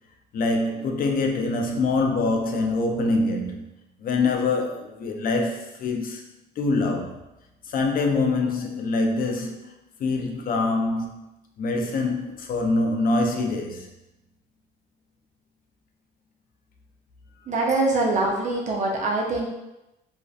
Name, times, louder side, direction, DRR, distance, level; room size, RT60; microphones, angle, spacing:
voice 1, 0.3-3.7 4.0-6.2 6.6-7.2 7.6-9.7 10.0-11.3 11.6-13.9, left 3 dB, 55° left, 0.4 m, -24 dB
voice 2, 17.5-19.5, right 2 dB, 40° right, 0.6 m, -23 dB
2.5 x 2.1 x 2.4 m
cardioid pair, 80°, 18 cm